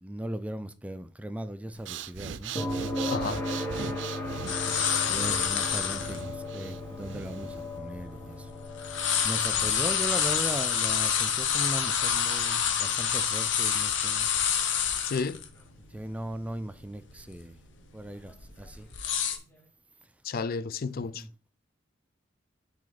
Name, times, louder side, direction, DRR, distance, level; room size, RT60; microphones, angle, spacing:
voice 1, 0.0-2.6 4.4-8.5 9.2-14.3 15.9-17.6 17.9-18.9 20.9-21.3, right 1 dB, 5° right, 0.4 m, -38 dB
Breathing, 1.7-7.8, right 7 dB, 70° right, 0.5 m, -40 dB
sound 1, 2.6-16.4 18.6-18.7, left 1 dB, 15° left, 1.9 m, -38 dB
voice 2, 3.1-3.4 15.0-15.4 20.2-21.2, left 5 dB, 55° left, 0.4 m, -31 dB
sound 2, 4.5-6.2 6.8-6.9 7.5-8.5 8.8-15.4 15.8-15.9 16.3-16.7 17.1-17.4 18.0-19.4, left 8 dB, 75° left, 1.1 m, -27 dB
7.6 x 4.2 x 4.0 m
head